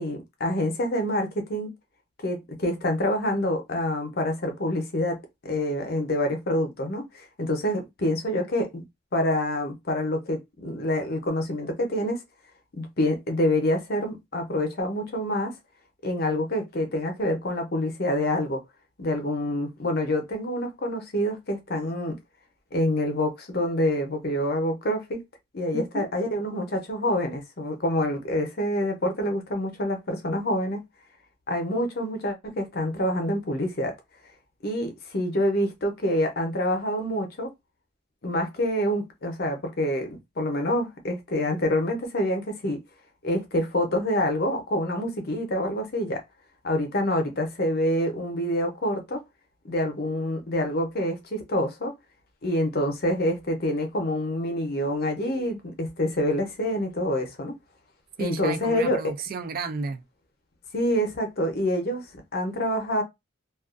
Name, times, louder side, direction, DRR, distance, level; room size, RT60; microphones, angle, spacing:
voice 1, 0.0-1.7 2.2-8.8 9.1-12.2 12.7-15.6 16.0-18.6 19.0-22.2 22.7-25.2 25.5-30.8 31.5-34.0 34.6-37.5 38.2-42.8 43.2-46.2 46.6-49.2 49.6-51.9 52.4-57.6 58.2-59.0 60.7-63.0, left 1 dB, 45° left, 0.7 m, -27 dB
voice 2, 25.7-26.1 58.2-60.0, right 4 dB, 45° right, 0.3 m, -33 dB
2.3 x 2.3 x 2.4 m
head